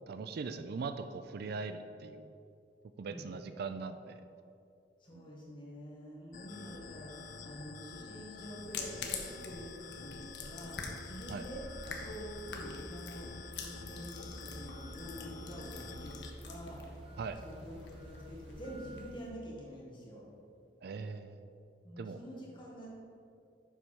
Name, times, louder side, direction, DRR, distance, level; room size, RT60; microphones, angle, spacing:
voice 1, 0.1-2.3 3.0-4.2 5.1-5.3 11.3-11.4 17.2-17.4 20.8-21.5 22.0-22.2, right 4 dB, 60° right, 9 dB, 0.4 m, -40 dB
voice 2, 5.0-16.8 17.4-20.3 21.8-22.9, equal, 30° left, -4 dB, 1.8 m, -47 dB
sound 1, 6.3-16.3, left 4 dB, 45° left, 0.4 m, -49 dB
sound 2, 8.6-19.3, left 5 dB, 70° left, 0.9 m, -47 dB
sound 3, 10.9-19.1, equal, 30° right, 1.2 m, -50 dB
7.4 x 5.3 x 4.6 m, 2.4 s
head